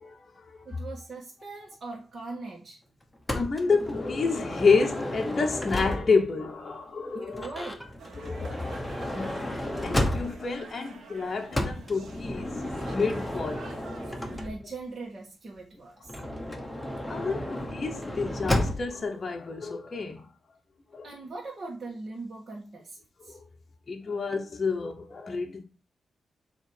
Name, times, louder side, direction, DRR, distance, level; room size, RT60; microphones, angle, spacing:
voice 1, 0.6-2.8 7.1-7.8 14.3-16.1 21.0-23.4, right 3 dB, 45° right, 1.5 m, -40 dB
voice 2, 3.3-7.5 8.2-8.6 9.1-9.5 9.8-13.6 17.1-20.2 20.9-21.1 23.9-25.6, left 4 dB, 35° left, 0.8 m, -29 dB
Motor vehicle (road) / Sliding door, 3.3-6.4 7.3-10.6 11.5-14.8 16.0-19.0, left 1 dB, 5° left, 1.0 m, -32 dB
sound 1, 8.0-14.5, right 3 dB, 75° right, 1.2 m, -47 dB
7.3 x 3.0 x 4.8 m
cardioid pair, 110°, 0 cm